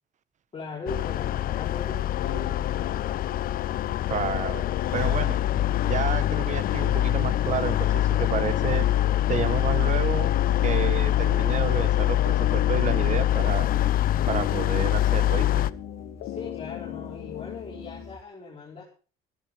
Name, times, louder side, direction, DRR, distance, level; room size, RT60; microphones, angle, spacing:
voice 1, 0.5-3.1 16.2-18.8, left 3 dB, 30° left, -4 dB, 4.8 m, -39 dB
sound 1, 0.9-15.7, left 13 dB, 60° left, 0.7 m, -24 dB
sound 2, 2.2-18.2, left 14 dB, 85° left, 1.1 m, -38 dB
sound 3, 2.3-18.2, equal, 15° right, 4.4 m, -47 dB
voice 2, 4.1-4.6 4.9-5.4 5.8-8.9 9.3-10.3 10.6-13.7 14.3-15.6, right 8 dB, 45° right, 15 dB, 1.3 m, -30 dB
14.0 x 13.5 x 5.1 m, 0.37 s
cardioid pair, 110°, 17 cm